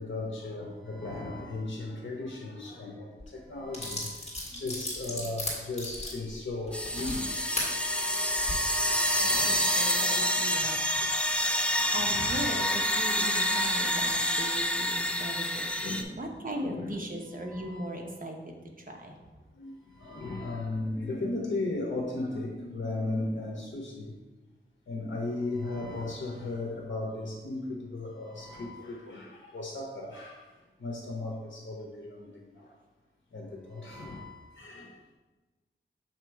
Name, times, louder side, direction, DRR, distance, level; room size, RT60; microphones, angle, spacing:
voice 1, 0.0-4.2 4.5-7.5 7.9-8.1 9.1-9.7 10.1-10.2 11.7-12.2 15.8-16.2 16.4-17.0 17.3-18.0 19.5-24.1 24.9-30.5 30.8-32.7 33.3-35.0, left 2 dB, 65° left, -2 dB, 0.9 m, -36 dB
sound 1, 3.2-3.3 3.7-7.7 8.3-8.5, left 1 dB, 30° left, 1.7 m, -36 dB
sound 2, 6.7-16.0, equal, 5° left, 0.4 m, -28 dB
voice 2, 9.2-10.8 11.9-15.7 16.2-18.6 18.9-19.2, equal, 45° right, 1 dB, 0.9 m, -38 dB
6.9 x 3.0 x 4.5 m, 1.2 s
wide cardioid pair, 70°, 20 cm